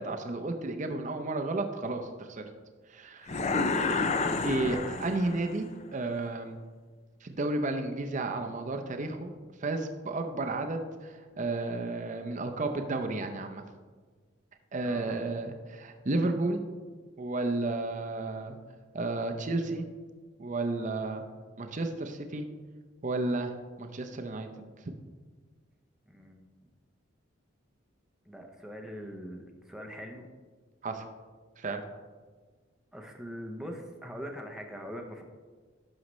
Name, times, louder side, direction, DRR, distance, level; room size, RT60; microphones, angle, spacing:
voice 1, 0.0-2.4 2.9-3.4 4.4-6.6 7.2-9.3 9.6-13.6 14.7-16.6 17.2-18.6 18.9-19.9 20.4-21.2 21.6-22.5 23.0-24.7 30.8-31.1 31.6-31.8, right 2 dB, 40° right, 5 dB, 0.6 m, -32 dB
sound 1, 3.3-5.6, left 3 dB, 35° left, 0.5 m, -29 dB
voice 2, 14.8-15.3 26.1-26.7 28.3-30.3 32.9-35.2, equal, 5° right, 2 dB, 0.7 m, -42 dB
11.5 x 6.3 x 3.1 m, 1.4 s
head